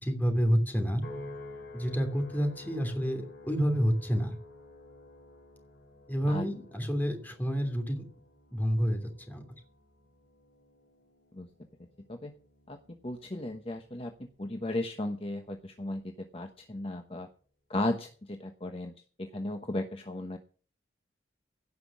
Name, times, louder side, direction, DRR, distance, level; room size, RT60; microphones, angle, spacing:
voice 1, 0.0-1.0 1.7-4.3 6.1-8.0 8.5-9.4, equal, 10° left, 5 dB, 3.0 m, -29 dB
sound 1, 1.0-15.5 16.0-16.4, left 2 dB, 70° left, 4.9 m, -51 dB
voice 2, 12.7-17.3 17.7-18.9 19.2-20.4, left 1 dB, 30° left, 5 dB, 1.1 m, -35 dB
16.5 x 6.1 x 7.3 m, 0.41 s
head